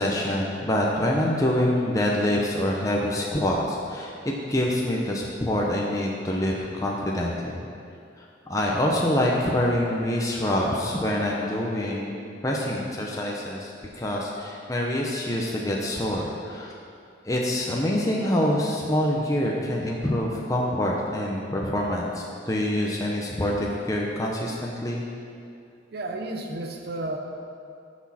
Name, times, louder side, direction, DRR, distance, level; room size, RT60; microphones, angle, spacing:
voice 1, 0.0-7.6 8.2-13.7 14.0-16.7 17.2-25.0, left 1 dB, 20° left, -2 dB, 0.8 m, -26 dB
voice 2, 25.9-27.2, right 2 dB, 55° right, 3 dB, 0.8 m, -32 dB
13.5 x 6.2 x 4.3 m, 2.4 s
head